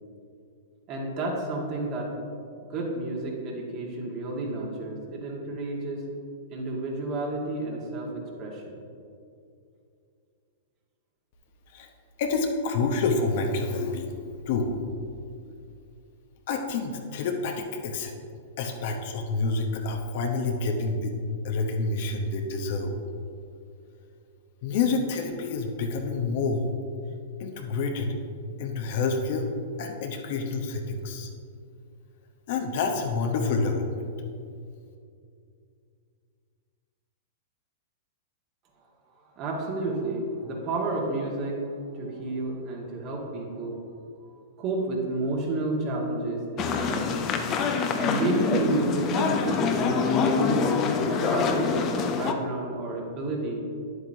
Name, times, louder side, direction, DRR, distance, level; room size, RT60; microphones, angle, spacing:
voice 1, 0.9-2.1 2.7-6.0 6.5-8.1 8.4-8.8 39.4-41.6 41.9-43.7 44.6-47.1 48.0-53.6, right 2 dB, 40° right, -1 dB, 1.8 m, -31 dB
voice 2, 12.2-14.2 14.5-14.8 16.5-18.1 18.6-21.1 21.4-23.0 24.6-26.7 27.4-28.2 28.6-29.5 29.8-31.3 32.5-34.1, left 3 dB, 55° left, 3 dB, 0.9 m, -28 dB
sound 1, 46.6-52.3, left 5 dB, 35° left, 0.7 m, -25 dB
9.8 x 7.9 x 2.8 m, 2.4 s
hypercardioid pair, 110°, 0 cm